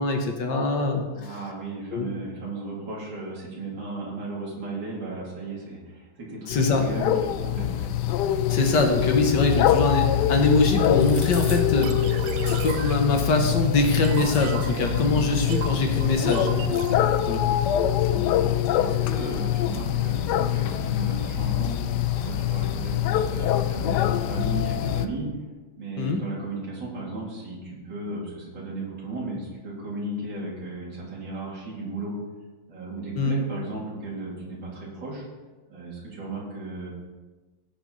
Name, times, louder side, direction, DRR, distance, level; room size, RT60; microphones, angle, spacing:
voice 1, 0.0-1.3 1.9-2.1 6.5-6.8 8.5-12.3 12.6-16.5 17.3-17.6 26.0-26.2 33.2-33.4, left 3 dB, 60° left, 3 dB, 1.6 m, -23 dB
voice 2, 1.2-7.9 16.9-17.2 18.1-18.5 18.8-21.7 22.1-25.3 25.8-32.1 32.7-35.2 35.7-36.9, right 2 dB, 55° right, -5 dB, 3.5 m, -35 dB
sound 1, 6.5-25.1, left 11 dB, 90° left, 0.9 m, -24 dB
sound 2, 10.9-21.1, left 1 dB, 15° left, 2.4 m, -47 dB
sound 3, 11.8-17.5, right 8 dB, 75° right, 1.3 m, -35 dB
16.5 x 6.3 x 4.0 m, 1.2 s
omnidirectional pair, 2.4 m